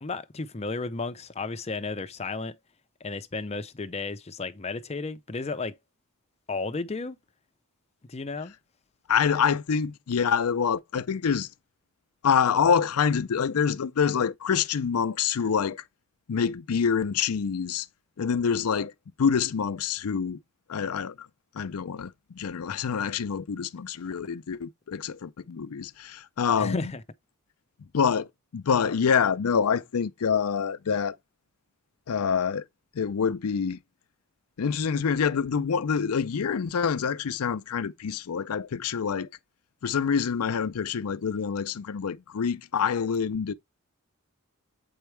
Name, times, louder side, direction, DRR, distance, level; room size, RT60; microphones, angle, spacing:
voice 1, 0.0-2.5 3.0-5.8 6.5-7.2 8.1-8.5 26.6-27.0, left 3 dB, 30° left, 0.6 m, -33 dB
voice 2, 9.1-11.5 12.2-15.8 16.3-17.9 18.2-18.9 19.2-20.4 20.7-21.3 21.5-26.9 27.9-28.3 28.5-31.2 32.1-32.6 32.9-33.8 34.6-39.3 39.8-43.5, left 6 dB, 80° left, 0.5 m, -26 dB
7.9 x 4.6 x 3.2 m
head